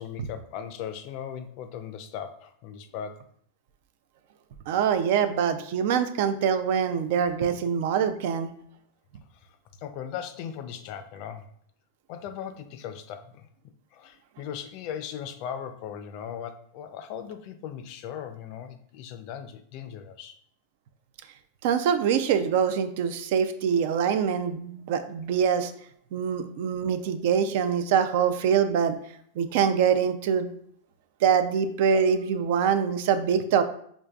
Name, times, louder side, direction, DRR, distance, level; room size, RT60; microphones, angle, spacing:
voice 1, 0.0-3.2 9.3-9.5 9.8-11.5 12.1-13.5 13.9-20.4, left 8 dB, 55° left, 9 dB, 0.4 m, -38 dB
voice 2, 4.7-8.5 21.6-25.7 26.1-29.0 29.4-30.5 31.2-33.6, right 7 dB, 65° right, 10 dB, 0.4 m, -24 dB
5.0 x 2.5 x 2.3 m, 0.64 s
hypercardioid pair, 120°, 0 cm